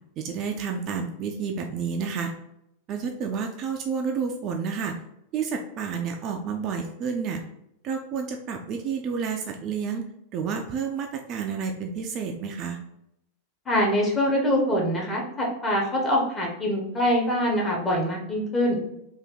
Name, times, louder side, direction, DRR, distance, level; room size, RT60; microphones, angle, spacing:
voice 1, 0.2-2.3 2.9-4.9 5.3-7.4 7.8-10.1 10.3-12.8, right 6 dB, 35° right, 3 dB, 0.4 m, -30 dB
voice 2, 13.7-18.8, equal, 15° left, -3 dB, 1.2 m, -24 dB
3.3 x 2.5 x 3.8 m, 0.81 s
figure-of-eight pair, 90°, 0 cm